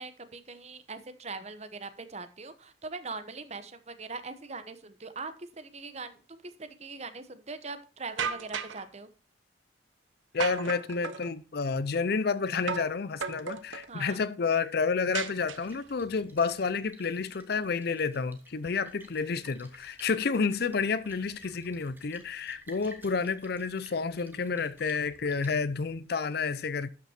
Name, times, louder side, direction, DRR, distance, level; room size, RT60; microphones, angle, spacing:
voice 1, 0.0-9.1 13.9-14.2, right 3 dB, 35° right, 0.9 m, -41 dB
sound 1, 8.2-8.8 10.4-11.3 12.7-13.0 13.2-13.9 15.1-15.9, right 6 dB, 85° right, 0.8 m, -34 dB
voice 2, 10.3-26.9, left 5 dB, 55° left, 0.5 m, -30 dB
Splash splatter, 15.4-26.0, right 1 dB, 10° right, 1.2 m, -55 dB
12.0 x 5.9 x 4.3 m
head